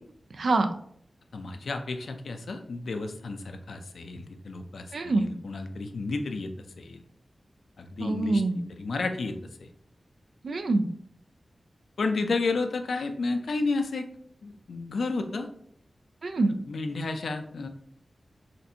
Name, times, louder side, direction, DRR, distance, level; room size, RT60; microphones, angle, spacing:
voice 1, 1.3-6.5 6.8-7.0 7.8-9.7 12.0-14.1 14.4-15.5 16.7-17.7, left 3 dB, 85° left, 6 dB, 0.4 m, -32 dB
voice 2, 4.9-5.3 8.0-8.6 10.4-10.9 16.2-16.5, right 2 dB, 75° right, 7 dB, 0.3 m, -25 dB
4.2 x 2.6 x 2.7 m, 0.65 s
wide cardioid pair, 80°, 0 cm